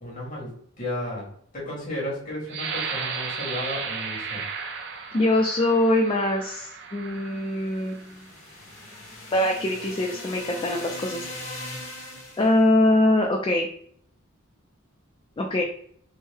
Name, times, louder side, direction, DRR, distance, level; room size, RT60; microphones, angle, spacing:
voice 1, 0.0-4.4, left 1 dB, 40° left, -4 dB, 1.4 m, -34 dB
sound 1, 2.5-8.1 8.8-8.9 9.4-9.9, right 5 dB, 60° right, 0.6 m, -35 dB
voice 2, 5.1-8.1 9.3-11.2 12.4-13.7 15.4-15.6, left 1 dB, 25° left, 1 dB, 0.3 m, -23 dB
sound 2, 7.6-12.6, left 1 dB, 65° left, 1.1 m, -39 dB
3.5 x 2.1 x 3.3 m, 0.63 s
head